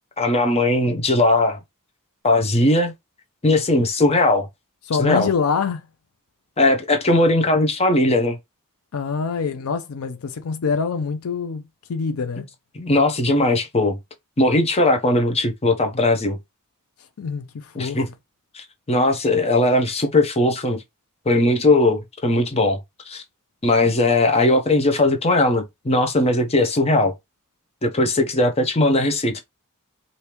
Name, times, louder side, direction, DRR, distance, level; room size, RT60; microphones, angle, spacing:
voice 1, 0.2-1.6 2.2-2.9 3.4-4.5 5.0-5.3 6.6-8.4 12.4-12.5 12.7-14.0 14.4-16.4 17.7-18.1 18.5-20.8 21.3-22.8 23.1-23.2 23.6-27.1 27.8-29.5, left 2 dB, 30° left, 0.7 m, -19 dB
voice 2, 4.8-5.9 8.9-12.5 17.2-18.0, left 5 dB, 70° left, 0.5 m, -25 dB
3.3 x 2.7 x 2.9 m
head